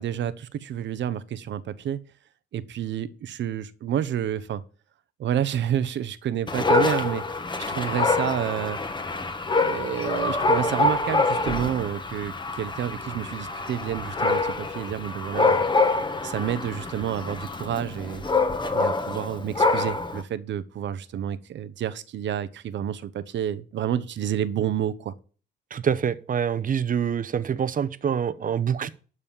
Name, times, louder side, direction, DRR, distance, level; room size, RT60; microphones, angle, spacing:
voice 1, 0.0-2.0 2.5-4.6 5.2-7.2 7.7-8.8 9.5-15.6 16.2-18.2 18.7-25.1, right 10 dB, 65° right, 1.0 m, -29 dB
Dog, 6.5-20.2, left 3 dB, 25° left, 1.5 m, -25 dB
voice 2, 25.7-28.9, right 8 dB, 45° right, 0.9 m, -26 dB
12.5 x 4.2 x 7.2 m
cardioid pair, 90°, 20 cm